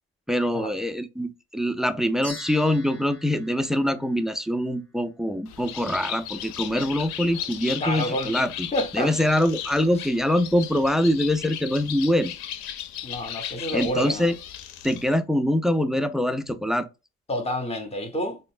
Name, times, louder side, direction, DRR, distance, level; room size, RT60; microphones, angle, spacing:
voice 1, 0.3-8.7 8.9-12.3 13.7-14.4 14.8-16.9, left 1 dB, ahead, 0.3 m, -24 dB
sound 1, 2.2-4.7, left 1 dB, 45° left, 1.1 m, -43 dB
Bird, 5.5-15.2, left 11 dB, 80° left, 0.5 m, -36 dB
voice 2, 7.8-8.4 8.7-9.1 13.0-14.3 17.3-18.4, left 1 dB, 15° left, 0.8 m, -28 dB
3.8 x 2.2 x 2.4 m
supercardioid pair, 60°, 37 cm